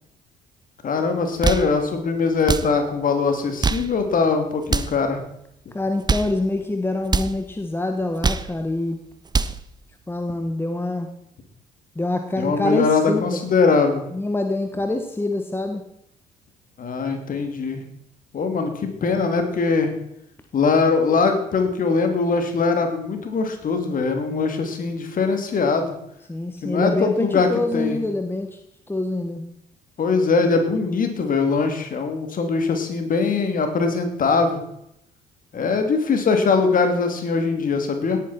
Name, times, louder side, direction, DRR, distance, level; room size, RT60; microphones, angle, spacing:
voice 1, 0.8-5.2 12.4-14.1 16.8-17.8 18.3-19.9 20.5-25.9 26.6-28.0 30.0-34.6 35.5-38.2, left 4 dB, 40° left, 6 dB, 2.8 m, -21 dB
sound 1, 1.2-1.7 2.4-2.7 3.4-3.9 4.6-5.0 5.9-6.4 7.0-7.4 8.0-8.5 9.1-9.6, right 4 dB, 20° right, 0.8 m, -24 dB
voice 2, 5.7-9.0 10.1-11.1 11.9-13.4 14.1-15.8 24.3-24.5 26.3-28.5 28.9-29.4, left 2 dB, 10° left, 6 dB, 1.4 m, -25 dB
18.0 x 9.5 x 4.3 m, 0.77 s
figure-of-eight pair, 50°, 21 cm